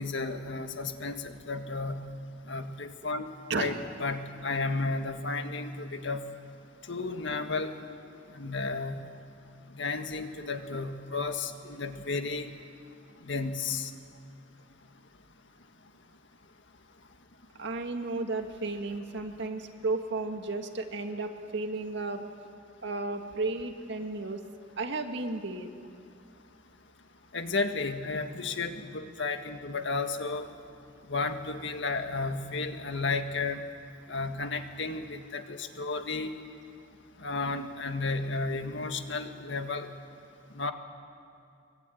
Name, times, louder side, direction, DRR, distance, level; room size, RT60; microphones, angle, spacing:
voice 1, 0.0-2.0 2.5-3.3 3.5-6.3 6.9-7.7 8.3-9.0 9.8-12.5 13.3-13.9 27.3-30.5 31.1-33.6 34.1-36.3 37.2-39.9 40.6-40.7, left 3 dB, 70° left, 6 dB, 1.7 m, -33 dB
voice 2, 17.6-22.2 22.8-24.4 24.8-25.7, right 3 dB, 65° right, 5 dB, 2.0 m, -33 dB
24.0 x 23.0 x 9.4 m, 2.4 s
head